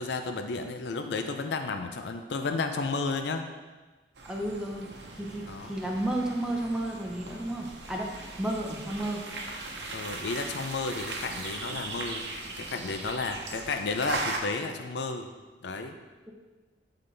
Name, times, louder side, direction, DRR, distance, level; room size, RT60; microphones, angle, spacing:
voice 1, 0.0-3.4 5.5-5.7 9.9-12.2 12.6-15.3 15.6-15.9, left 3 dB, 70° left, 6 dB, 0.5 m, -32 dB
sound 1, 4.1-14.4, right 3 dB, 75° right, 0.9 m, -39 dB
voice 2, 4.2-9.2, right 1 dB, 5° right, -1 dB, 0.9 m, -32 dB
11.5 x 4.0 x 3.3 m, 1.3 s
head